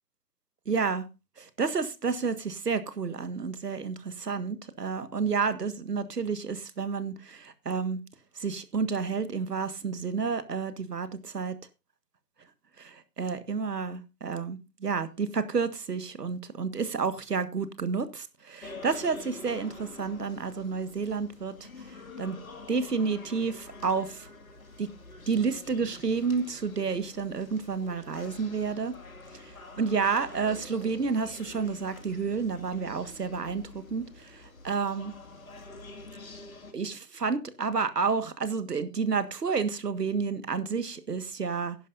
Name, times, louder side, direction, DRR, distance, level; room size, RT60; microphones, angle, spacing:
voice 1, 0.6-1.1 1.4-8.0 8.3-11.6 12.8-21.7 22.2-22.4 22.7-24.3 24.8-24.9 25.3-29.0 29.3-35.1 36.7-41.8, right 5 dB, 80° right, 1.7 m, -30 dB
sound 1, 18.6-36.7, left 3 dB, 60° left, 2.3 m, -47 dB
15.0 x 11.0 x 2.6 m
hypercardioid pair, 180°, 48 cm